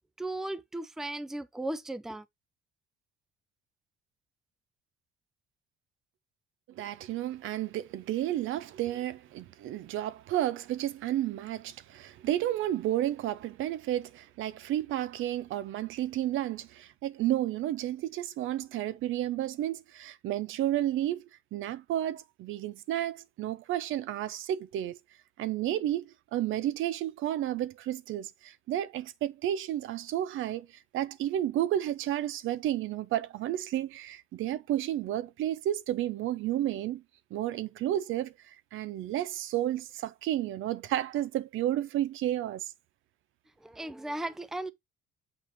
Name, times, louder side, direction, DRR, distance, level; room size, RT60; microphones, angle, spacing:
voice 1, 0.2-2.2 43.6-44.7, right 1 dB, ahead, 0.5 m, -36 dB
voice 2, 6.7-25.0 25.4-30.7 30.9-37.0 37.3-42.7, right 12 dB, 70° right, 0.7 m, -32 dB
6.9 x 5.4 x 3.0 m
cardioid pair, 115°, 21 cm